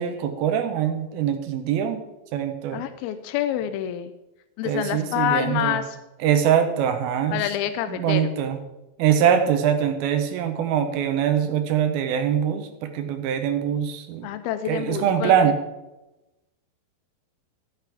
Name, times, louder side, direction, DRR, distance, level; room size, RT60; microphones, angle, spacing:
voice 1, 0.0-2.0 2.3-2.9 4.6-5.8 6.2-7.4 7.9-8.6 9.0-14.3 14.7-15.6, right 9 dB, 80° right, 7 dB, 2.8 m, -23 dB
voice 2, 2.7-4.1 4.6-5.8 7.3-8.3 14.2-15.5, left 11 dB, 85° left, 10 dB, 2.5 m, -27 dB
14.0 x 9.3 x 3.5 m, 0.98 s
omnidirectional pair, 4.3 m